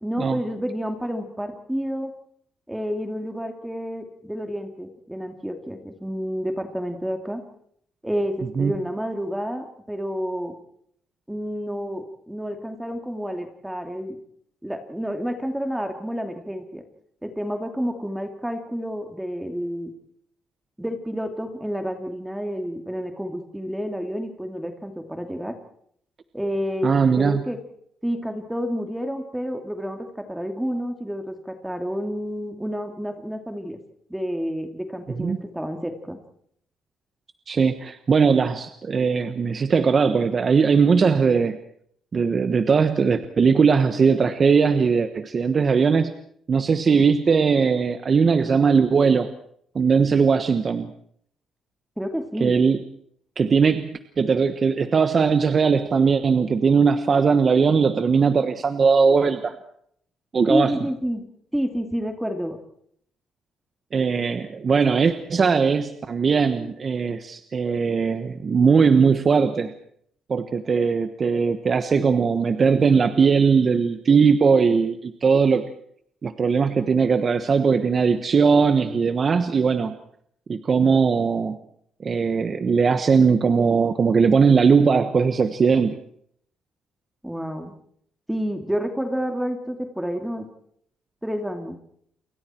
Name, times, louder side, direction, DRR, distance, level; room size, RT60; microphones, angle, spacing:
voice 1, 0.0-2.1 2.7-7.4 8.0-10.5 11.3-14.2 14.6-16.8 17.2-19.9 20.8-25.5 26.3-26.9 27.2-27.6 28.0-33.8 34.1-36.2 52.0-52.6 60.5-61.2 61.5-62.6 87.2-87.7 88.3-90.5 91.2-91.8, equal, 5° right, 5 dB, 2.8 m, -29 dB
voice 2, 26.8-27.4 35.2-35.4 37.5-41.6 42.1-46.1 46.5-49.3 49.7-50.9 52.4-52.8 53.4-59.5 60.3-60.7 63.9-69.7 70.3-75.6 76.2-80.0 80.5-81.6 82.0-86.0, right 5 dB, 40° right, 10 dB, 1.3 m, -19 dB
29.5 x 23.5 x 4.5 m, 0.67 s
cardioid pair, 90°, 0 cm